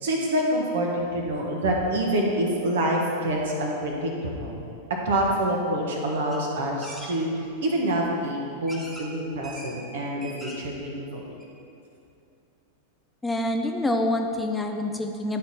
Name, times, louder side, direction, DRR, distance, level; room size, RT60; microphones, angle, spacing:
voice 1, 0.0-4.5 5.0-11.3, right 1 dB, 60° right, 0 dB, 1.3 m, -26 dB
sound 1, 6.3-6.4 6.8-7.1 8.0-8.1 8.7-9.1 9.4-9.7 10.1-10.7 11.1-11.2 11.4-11.5, right 1 dB, 10° right, 1.4 m, -41 dB
voice 2, 13.2-15.4, left 1 dB, 10° left, 3 dB, 0.5 m, -26 dB
11.0 x 4.4 x 4.2 m, 2.6 s
figure-of-eight pair, 90°, 0 cm